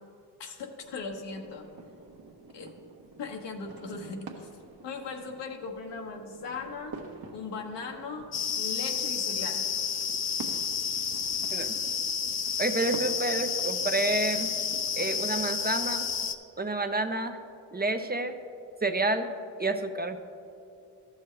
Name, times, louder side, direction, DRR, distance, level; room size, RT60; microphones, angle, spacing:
voice 1, 0.4-1.7 2.5-2.7 3.2-4.5 4.8-6.9 7.3-8.3 8.6-9.7, left 4 dB, 70° left, 3 dB, 1.2 m, -38 dB
sound 1, 0.8-15.7, right 3 dB, 55° right, 1.2 m, -48 dB
sound 2, 8.3-16.3, left 6 dB, 40° left, 0.7 m, -30 dB
voice 2, 12.6-14.6 15.0-16.1 16.6-17.4 17.7-18.3 18.8-19.3 19.6-20.2, right 2 dB, 20° right, 7 dB, 0.6 m, -29 dB
14.0 x 6.3 x 3.2 m, 2.6 s
supercardioid pair, 50°, 44 cm